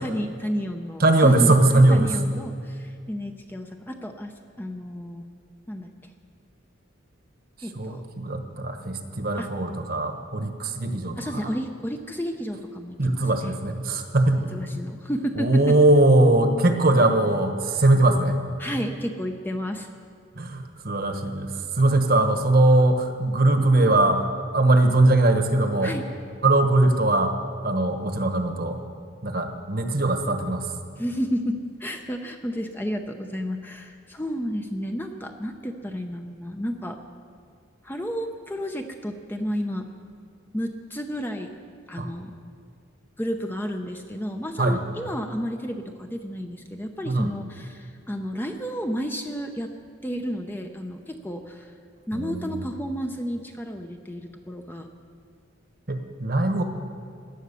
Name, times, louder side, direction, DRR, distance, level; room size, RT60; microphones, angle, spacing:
voice 1, 0.0-5.2 5.7-5.9 7.6-8.0 9.4-9.5 11.2-13.5 14.5-15.8 18.6-19.9 25.8-26.0 31.0-37.0 37.8-39.9 40.5-41.5 41.9-42.3 43.2-49.7 50.0-51.7 52.1-54.9, equal, 10° left, 4 dB, 0.6 m, -31 dB
voice 2, 1.0-2.2 7.7-11.5 13.0-14.6 15.4-18.4 20.4-24.3 24.5-25.9 26.4-27.4 27.6-28.8 29.2-30.7 42.0-42.1 44.6-44.8 47.1-47.3 52.1-52.7 55.9-56.6, right 2 dB, 45° right, 6 dB, 1.2 m, -21 dB
16.5 x 11.0 x 6.9 m, 2.2 s
head